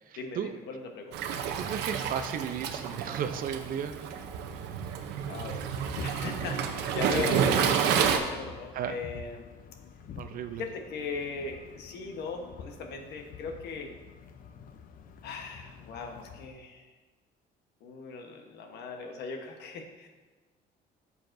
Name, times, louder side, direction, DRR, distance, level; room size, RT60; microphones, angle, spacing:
voice 1, 0.2-1.2 5.3-5.6 6.0-9.5 10.5-13.9 15.2-16.9 17.8-20.1, left 4 dB, 75° left, 4 dB, 1.2 m, -38 dB
Waves surf, 1.1-8.2, right 7 dB, 90° right, 0.7 m, -30 dB
voice 2, 1.4-3.9 8.7-9.0 10.2-10.6, right 8 dB, 55° right, 9 dB, 0.6 m, -34 dB
sound 1, 5.6-16.5, left 6 dB, 55° left, 0.6 m, -47 dB
10.5 x 7.0 x 2.6 m, 1.3 s
cardioid pair, 110°, 17 cm